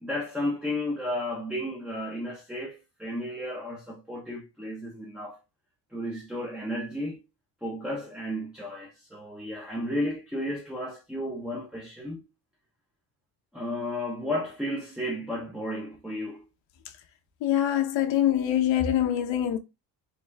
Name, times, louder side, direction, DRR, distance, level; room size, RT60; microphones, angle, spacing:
voice 1, 0.0-5.4 5.9-7.2 7.6-12.3 13.5-16.5, left 1 dB, ahead, 0.6 m, -33 dB
voice 2, 17.4-19.6, left 11 dB, 75° left, 0.8 m, -24 dB
3.7 x 3.2 x 3.3 m
cardioid pair, 140°, 46 cm